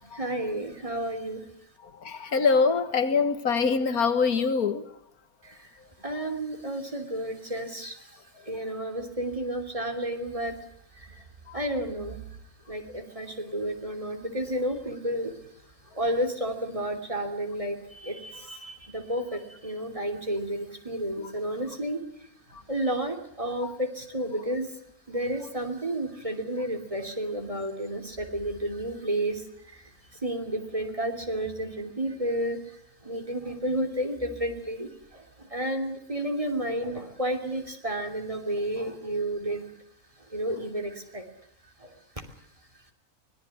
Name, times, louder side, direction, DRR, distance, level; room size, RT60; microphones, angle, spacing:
voice 1, 0.1-1.5 5.4-5.7 6.0-8.2 8.4-10.6 11.0-11.2 11.5-12.2 12.7-15.3 16.0-22.0 22.7-24.7 25.1-29.9 30.2-32.6 33.0-39.7 40.3-41.3 41.8-42.2, right 1 dB, 20° right, 3.1 m, -31 dB
voice 2, 2.0-4.9 11.5-11.6 21.2-21.3 23.6-23.7, left 5 dB, 80° left, 2.0 m, -24 dB
25.0 x 19.0 x 7.9 m
omnidirectional pair, 1.5 m